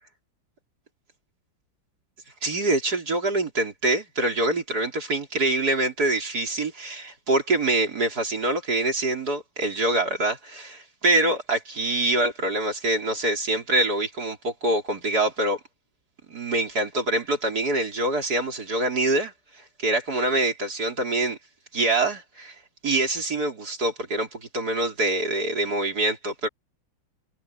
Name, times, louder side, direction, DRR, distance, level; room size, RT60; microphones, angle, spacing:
voice 1, 2.4-15.6 16.3-21.4 21.7-22.5 22.8-26.5, right 2 dB, 50° right, 4.4 m, -25 dB
omnidirectional pair, 2.2 m